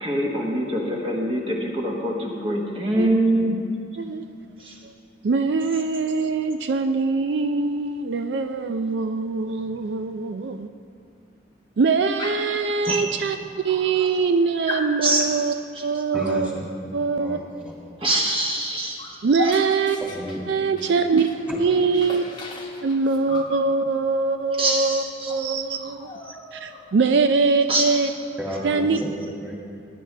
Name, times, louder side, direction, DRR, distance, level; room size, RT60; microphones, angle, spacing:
voice 1, 0.0-3.6 4.6-4.7 12.8-13.0 13.7-13.8 15.0-15.3 15.7-15.8 18.0-19.0 19.4-19.6 24.6-25.4 27.7-27.9, right 1 dB, 30° right, -1 dB, 1.3 m, -24 dB
voice 2, 5.2-10.7 11.8-15.5 15.8-16.5 16.9-17.4 19.2-20.0 20.5-21.3 21.6-22.3 22.8-26.1 26.5-28.1 28.6-29.0, right 4 dB, 75° right, 7 dB, 0.4 m, -23 dB
Dog, 12.2-12.6 13.4-13.5 13.8-14.3 14.7-15.0 16.1-16.4 18.2-18.4 18.7-21.4 21.7-23.6 24.8-25.0 25.3-25.4 25.7-27.0, left 3 dB, 25° left, 1.0 m, -36 dB
voice 3, 16.1-16.7 17.2-17.7 20.0-20.4 21.5-21.6 28.4-29.1 29.4-29.5, equal, 5° right, -4 dB, 2.1 m, -32 dB
19.0 x 9.6 x 3.3 m, 2.3 s
head